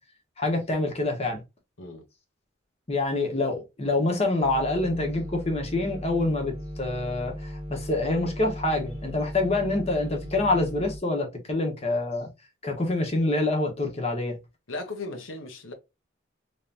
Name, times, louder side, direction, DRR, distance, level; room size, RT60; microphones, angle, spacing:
voice 1, 0.4-1.4 2.9-12.3 12.6-14.4, left 2 dB, 30° left, 1.1 m, -26 dB
sound 1, 4.4-11.0, equal, 25° right, 1.2 m, -37 dB
voice 2, 14.7-15.7, left 2 dB, 90° left, 1.1 m, -36 dB
3.5 x 3.2 x 2.8 m
head